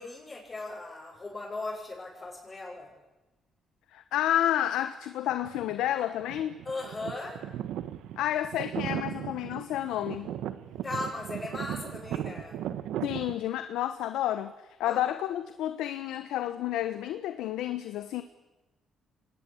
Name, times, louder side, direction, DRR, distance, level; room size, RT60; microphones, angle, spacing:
voice 1, 0.0-2.9 6.6-7.4 10.8-12.6 14.8-15.0, left 2 dB, 30° left, -4 dB, 7.2 m, -38 dB
voice 2, 3.9-6.6 8.2-10.3 13.0-14.5 14.8-18.2, left 12 dB, 90° left, 10 dB, 1.1 m, -30 dB
sound 1, 5.3-5.9 6.2-13.3, right 11 dB, 85° right, 1.4 m, -37 dB
25.0 x 19.5 x 8.6 m, 1.1 s
cardioid pair, 90°, 0 cm